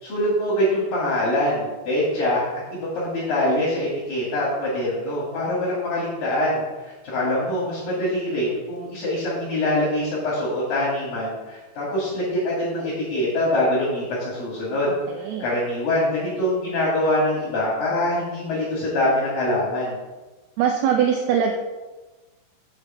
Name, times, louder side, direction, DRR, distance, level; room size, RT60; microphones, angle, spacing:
voice 1, 0.0-14.9 15.4-20.0, left 1 dB, 55° left, -7 dB, 3.9 m, -24 dB
voice 2, 15.1-15.5 20.6-21.5, right 8 dB, 80° right, 3 dB, 2.4 m, -21 dB
6.8 x 6.4 x 7.4 m, 1.2 s
omnidirectional pair, 5.1 m